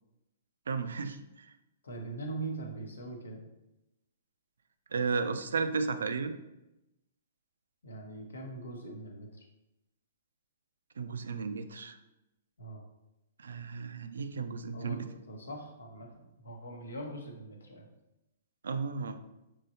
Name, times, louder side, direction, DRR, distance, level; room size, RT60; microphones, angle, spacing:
voice 1, 0.7-1.2 4.9-6.3 11.0-12.0 13.4-15.1 18.6-19.2, right 4 dB, 75° right, 10 dB, 0.4 m, -33 dB
voice 2, 1.8-3.5 7.8-9.4 12.6-12.8 14.7-16.1 16.4-17.9, right 2 dB, 80° left, 2 dB, 0.9 m, -42 dB
5.6 x 3.1 x 2.7 m, 0.92 s
hypercardioid pair, 120°, 0 cm